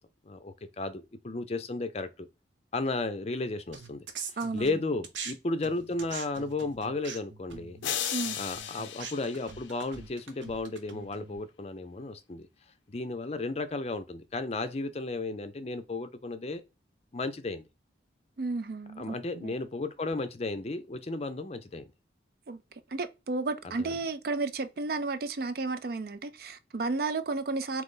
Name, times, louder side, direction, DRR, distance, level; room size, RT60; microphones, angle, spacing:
voice 1, 0.2-2.3 2.7-4.1 4.5-7.8 8.4-12.5 12.9-16.6 17.1-17.6 19.0-21.9 23.6-24.0, left 2 dB, 35° left, 0.5 m, -34 dB
sound 1, 3.7-5.3 5.6-11.4, right 6 dB, 85° right, 0.8 m, -43 dB
voice 2, 4.4-4.7 8.1-8.4 18.4-19.2 19.4-19.5 22.5-22.6 22.9-27.8, right 3 dB, 55° right, 0.4 m, -32 dB
sound 2, 7.8-10.2, left 10 dB, 90° left, 0.5 m, -36 dB
3.9 x 3.0 x 3.7 m
head